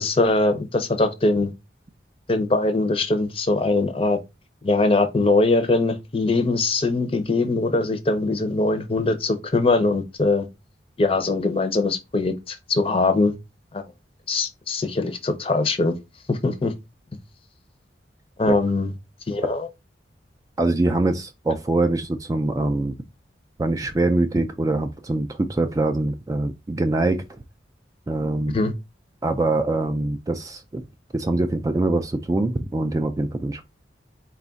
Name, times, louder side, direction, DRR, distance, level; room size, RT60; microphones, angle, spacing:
voice 1, 0.0-1.5 2.3-4.2 4.6-10.5 11.0-13.3 13.7-13.8 14.3-16.0 16.3-16.7 18.4-18.9 19.3-19.7 28.5-28.7, left 2 dB, 30° left, 0.6 m, -22 dB
voice 2, 20.6-23.0 23.6-27.4 28.1-28.6 29.2-30.8 31.1-33.7, right 2 dB, 20° right, 0.3 m, -23 dB
4.1 x 2.3 x 3.9 m
head